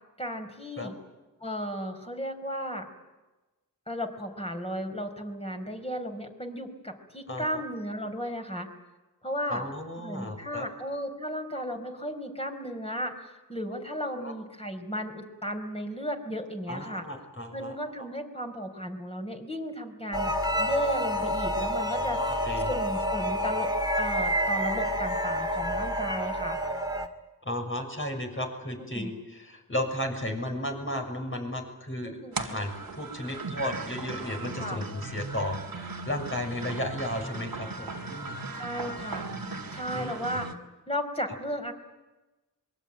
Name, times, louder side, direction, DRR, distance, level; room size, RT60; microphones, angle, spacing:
voice 1, 0.2-0.9 1.4-2.9 3.9-8.7 9.2-9.6 10.0-17.0 17.5-22.2 22.7-23.7 24.0-26.6 28.8-29.1 32.0-32.3 34.6-34.8 38.5-39.3 39.7-40.5 40.9-41.7, equal, 15° left, 3 dB, 4.7 m, -34 dB
voice 2, 7.3-7.6 9.5-10.7 14.2-14.3 16.7-17.7 22.1-22.7 27.4-38.4 39.9-40.4, left 1 dB, 35° left, 3 dB, 6.4 m, -34 dB
sound 1, 20.1-27.1, equal, 10° right, 2.2 m, -28 dB
sound 2, 32.3-40.5, right 3 dB, 80° right, 2.1 m, -38 dB
26.0 x 22.0 x 9.1 m, 1.1 s
wide cardioid pair, 60°, 35 cm